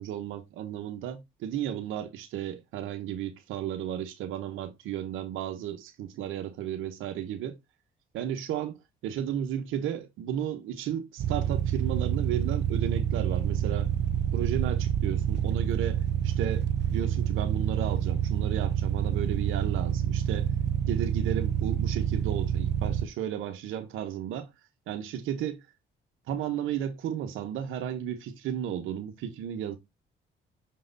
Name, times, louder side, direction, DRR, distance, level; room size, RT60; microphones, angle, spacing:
voice 1, 0.0-7.6 8.1-8.8 9.0-13.9 14.3-20.5 20.9-24.5 24.9-25.6 26.3-29.8, right 10 dB, 90° right, 1.0 m, -34 dB
sound 1, 11.2-23.1, right 9 dB, 60° right, 0.8 m, -27 dB
6.3 x 3.9 x 3.8 m
cardioid pair, 90°, 20 cm